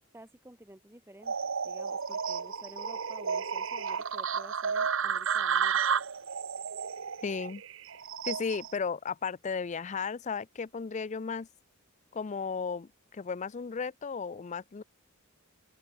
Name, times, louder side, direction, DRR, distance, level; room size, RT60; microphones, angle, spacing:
voice 1, 0.1-1.3 1.6-5.8, right 1 dB, 10° right, 1.9 m, -51 dB
sound 1, 1.2-8.8, right 6 dB, 65° right, 1.0 m, -32 dB
voice 2, 7.2-7.6 8.2-11.5 12.1-14.8, left 5 dB, 35° left, 0.4 m, -35 dB
open air
head